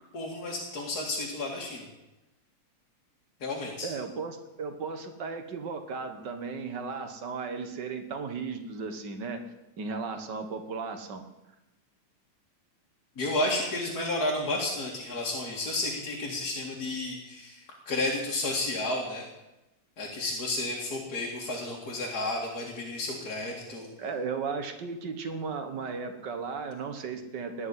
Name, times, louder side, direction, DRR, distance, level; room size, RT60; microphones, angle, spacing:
voice 1, 0.1-1.9 3.4-3.9 13.2-19.2 20.0-23.9, left 2 dB, 35° left, -2 dB, 2.1 m, -32 dB
voice 2, 3.8-9.4 9.8-11.2 23.7-27.7, right 5 dB, 60° right, 7 dB, 1.1 m, -35 dB
19.0 x 7.1 x 9.6 m, 0.97 s
omnidirectional pair, 3.9 m